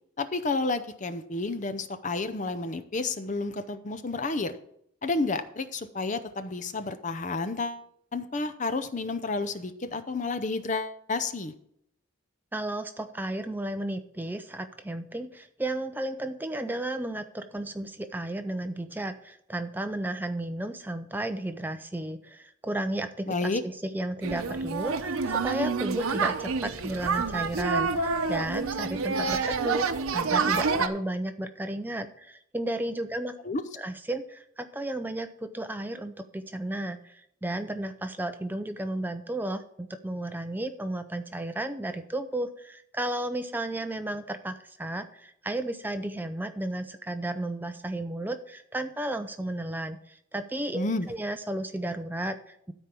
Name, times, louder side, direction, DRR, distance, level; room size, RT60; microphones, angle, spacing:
voice 1, 0.2-4.6 5.0-7.8 8.1-11.5 23.3-23.6 33.4-33.6 50.7-51.1, left 3 dB, 35° left, 10 dB, 0.6 m, -30 dB
voice 2, 12.5-33.4 33.8-52.7, right 1 dB, 10° right, 8 dB, 0.5 m, -33 dB
sound 1, 24.2-30.9, right 4 dB, 90° right, 0.8 m, -28 dB
13.0 x 4.5 x 6.9 m, 0.72 s
head